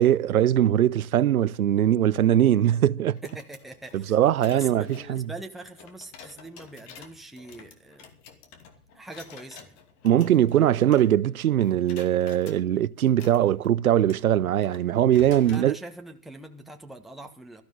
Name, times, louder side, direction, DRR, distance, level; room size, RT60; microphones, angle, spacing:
voice 1, 0.0-3.2 3.9-5.2 10.0-15.8, right 11 dB, 75° right, 0.7 m, -21 dB
sound 1, 3.1-11.3 11.6-12.6 13.1-15.7, left 6 dB, 40° left, 2.7 m, -49 dB
voice 2, 3.2-4.2 4.5-8.1 8.9-9.7 15.4-17.6, right 2 dB, ahead, 1.4 m, -42 dB
18.5 x 13.5 x 3.9 m
figure-of-eight pair, 105°, 44 cm